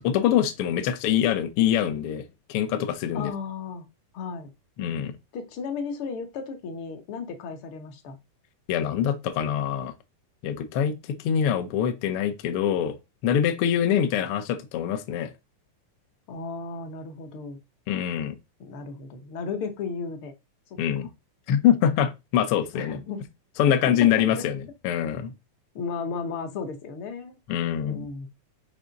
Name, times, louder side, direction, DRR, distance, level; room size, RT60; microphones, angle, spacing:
voice 1, 0.0-2.2 2.5-3.3 4.8-5.1 8.7-9.9 10.4-10.9 11.2-13.0 13.2-15.3 17.9-18.3 20.8-21.1 21.5-23.0 23.6-25.3 27.5-28.1, left 9 dB, 85° left, 1.2 m, -24 dB
voice 2, 3.1-3.9 4.1-4.5 5.3-8.2 16.3-17.6 18.6-20.3 21.0-21.1 22.7-23.2 23.7-24.5 25.7-27.4 27.8-28.3, left 5 dB, 60° left, 1.5 m, -34 dB
5.5 x 3.6 x 5.2 m
omnidirectional pair, 3.6 m